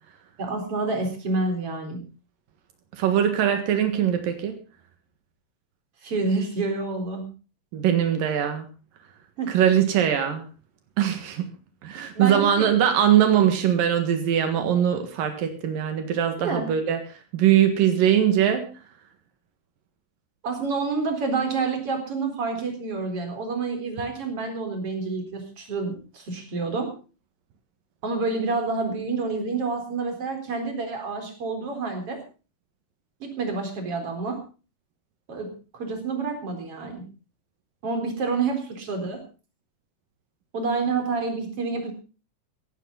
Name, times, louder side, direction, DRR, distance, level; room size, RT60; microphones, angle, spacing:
voice 1, 0.4-2.0 6.0-7.3 9.4-9.5 12.1-12.7 16.4-16.7 20.4-26.9 28.0-32.2 33.2-34.4 35.3-37.0 37.8-39.2 40.5-41.9, right 4 dB, 40° right, 5 dB, 5.0 m, -28 dB
voice 2, 2.9-4.6 7.7-8.7 9.5-10.5 11.0-11.6 11.8-18.7, right 10 dB, 85° right, 7 dB, 3.4 m, -21 dB
16.0 x 15.5 x 4.0 m, 0.35 s
omnidirectional pair, 3.9 m